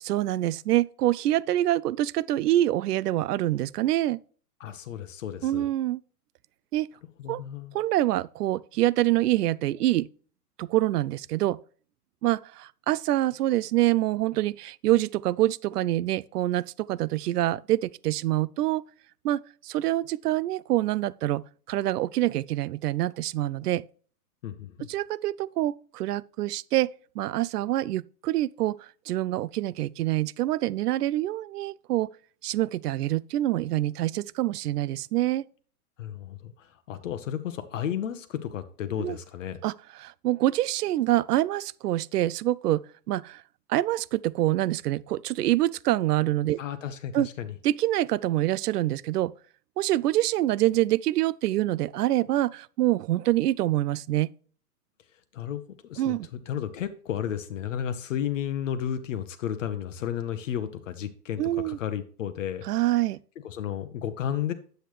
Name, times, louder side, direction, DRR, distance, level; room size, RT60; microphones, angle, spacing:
voice 1, 0.0-4.2 5.4-6.0 6.7-6.9 7.3-7.4 7.7-10.1 10.6-11.6 12.2-18.8 19.2-23.8 24.9-32.1 32.4-35.4 39.0-39.2 39.6-39.7 40.0-43.4 43.7-46.6 47.1-47.3 47.6-49.3 49.8-54.3 56.0-56.3 61.4-61.8 62.7-63.2, right 15 dB, 75° right, 0.5 m, -26 dB
voice 2, 4.6-5.7 7.2-7.8 24.4-24.9 36.0-39.6 46.6-47.5 55.3-62.7 63.4-64.5, left 9 dB, 55° left, 0.8 m, -33 dB
8.6 x 7.9 x 3.1 m
hypercardioid pair, 160°, 47 cm